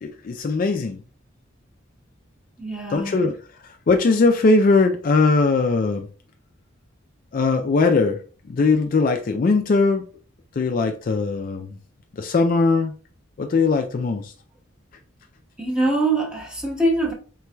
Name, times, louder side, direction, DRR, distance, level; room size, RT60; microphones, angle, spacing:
voice 1, 0.0-1.0 2.9-3.3 3.6-6.1 7.3-8.2 8.5-10.0 10.6-11.7 12.2-12.9 13.4-14.3, left 3 dB, 40° left, 0.3 m, -20 dB
voice 2, 2.6-3.2 15.6-17.1, right 2 dB, 5° right, 1.1 m, -23 dB
4.6 x 3.8 x 2.2 m
head